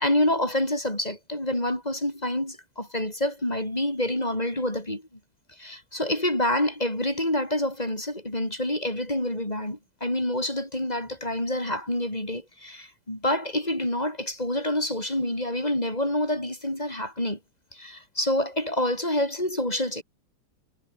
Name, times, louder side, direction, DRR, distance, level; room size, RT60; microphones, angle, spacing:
voice 1, 0.0-5.0 5.6-17.4 17.7-20.0, left 1 dB, 20° left, 6.4 m, -27 dB
omnidirectional pair, 2.1 m